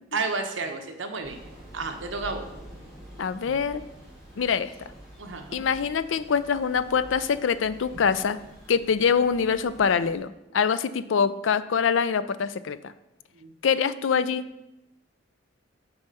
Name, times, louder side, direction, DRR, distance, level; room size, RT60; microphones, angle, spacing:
voice 1, 0.1-1.4 1.7-2.5 5.2-5.6 13.3-13.5, right 4 dB, 75° right, 5 dB, 0.9 m, -31 dB
Thunder / Rain, 1.2-10.2, right 1 dB, ahead, 3.2 m, -47 dB
voice 2, 3.2-3.8 4.4-4.9 5.5-8.4 8.7-12.9 13.6-14.5, left 6 dB, 75° left, 14 dB, 0.4 m, -24 dB
7.0 x 4.3 x 6.7 m, 0.92 s
head